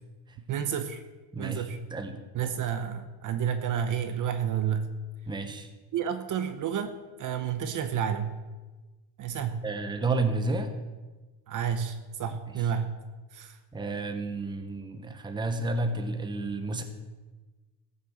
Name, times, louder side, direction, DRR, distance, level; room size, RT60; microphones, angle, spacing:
voice 1, 0.5-1.0 1.4-1.8 2.3-4.9 5.9-8.4 9.2-9.6 11.5-12.9 13.3-13.6, right 8 dB, 40° right, 9 dB, 0.9 m, -30 dB
voice 2, 1.3-2.2 5.3-5.7 9.6-10.7 13.7-16.8, right 3 dB, 10° right, 7 dB, 1.0 m, -31 dB
14.5 x 7.0 x 7.2 m, 1.2 s
cardioid pair, 145°, 47 cm